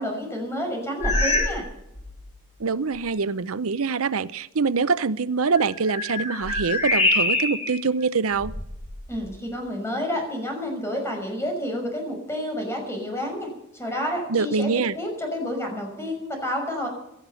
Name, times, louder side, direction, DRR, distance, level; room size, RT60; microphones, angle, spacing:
voice 1, 0.0-1.6 9.1-16.9, equal, 10° left, 2 dB, 5.9 m, -30 dB
sound 1, 1.0-1.7 1.9-2.3 3.0-3.1 5.4-7.8 8.3-9.3, left 2 dB, 30° left, 4.9 m, -25 dB
voice 2, 2.6-8.5 14.3-14.9, right 4 dB, 70° right, 14 dB, 0.7 m, -24 dB
17.5 x 12.5 x 5.7 m, 0.84 s
head